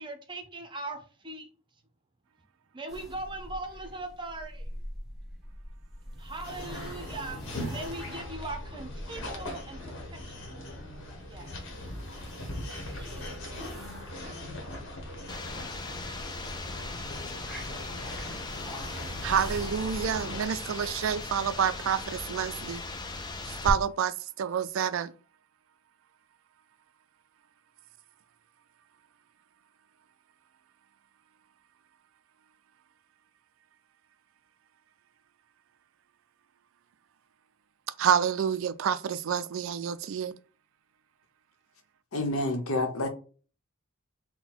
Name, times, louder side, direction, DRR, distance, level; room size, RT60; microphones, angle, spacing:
voice 1, 0.0-1.5 2.7-4.7 6.1-10.6 11.1-11.5 12.7-13.9 14.2-14.8, right 2 dB, 25° right, 0.7 m, -41 dB
sound 1, 2.9-20.4, equal, ahead, 1.0 m, -44 dB
sound 2, 6.4-20.4, left 1 dB, 60° left, 1.2 m, -41 dB
sound 3, 15.3-23.7, left 3 dB, 20° left, 0.4 m, -38 dB
voice 2, 19.2-22.8 23.6-25.1 38.0-40.3, right 8 dB, 65° right, 0.3 m, -28 dB
voice 3, 42.1-43.1, left 2 dB, 80° left, 0.9 m, -28 dB
3.9 x 2.2 x 4.2 m
head